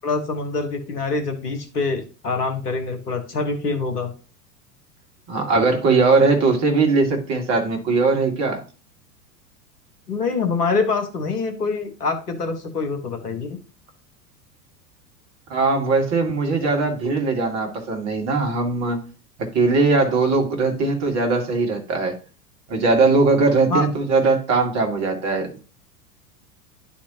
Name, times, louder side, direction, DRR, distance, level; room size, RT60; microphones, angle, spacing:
voice 1, 0.0-4.1 10.1-13.6 23.7-23.8, left 4 dB, 70° left, 1.5 m, -25 dB
voice 2, 5.3-8.6 15.5-19.0 19.4-22.2 22.7-25.5, right 3 dB, 35° right, 1.9 m, -20 dB
11.5 x 4.3 x 2.9 m
figure-of-eight pair, 85°, 48 cm